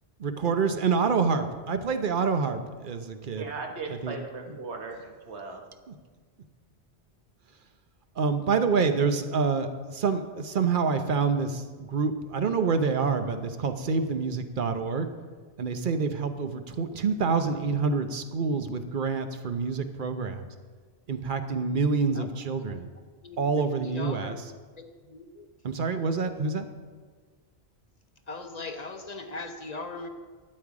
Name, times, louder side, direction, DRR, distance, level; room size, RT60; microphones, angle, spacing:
voice 1, 0.2-3.5 3.9-4.1 5.9-6.0 8.2-15.1 15.6-20.5 21.1-22.9 23.4-24.5 25.6-26.7, right 5 dB, 55° right, 8 dB, 0.9 m, -27 dB
voice 2, 3.4-5.6, right 4 dB, 90° right, 2 dB, 1.6 m, -37 dB
voice 3, 23.2-24.4 24.8-25.5 28.3-30.1, left 3 dB, 45° left, 6 dB, 0.7 m, -39 dB
12.0 x 8.6 x 4.8 m, 1.5 s
omnidirectional pair, 1.1 m